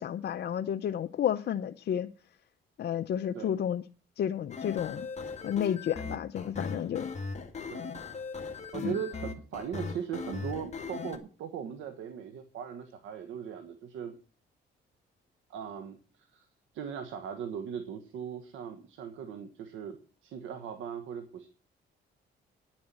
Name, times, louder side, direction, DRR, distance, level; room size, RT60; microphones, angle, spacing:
voice 1, 0.0-2.1 2.8-3.8 4.2-5.1 5.4-7.1 8.8-8.9, left 9 dB, 55° left, 0.6 m, -31 dB
sound 1, 4.5-11.2, left 4 dB, 35° left, 2.1 m, -38 dB
voice 2, 8.7-14.1 15.5-16.5 16.7-21.5, right 8 dB, 85° right, 1.4 m, -39 dB
9.9 x 7.3 x 7.4 m
cardioid pair, 90°, 20 cm